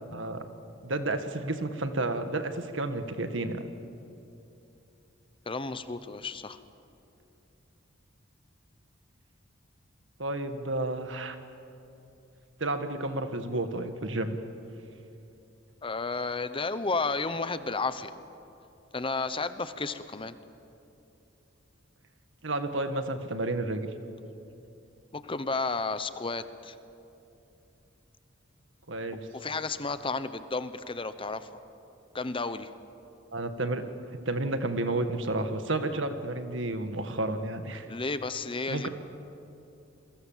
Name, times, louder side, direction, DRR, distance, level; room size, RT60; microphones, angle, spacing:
voice 1, 0.8-3.7 10.2-11.4 12.6-14.4 22.4-23.9 28.9-29.2 33.3-33.8 34.3-37.9 38.7-38.9, right 2 dB, 65° right, 8 dB, 1.8 m, -31 dB
voice 2, 5.5-6.6 15.8-18.1 18.9-20.4 25.1-26.7 29.3-31.5 32.1-32.7 37.9-38.9, left 3 dB, 25° left, 12 dB, 0.9 m, -32 dB
29.5 x 22.5 x 7.5 m, 2.8 s
head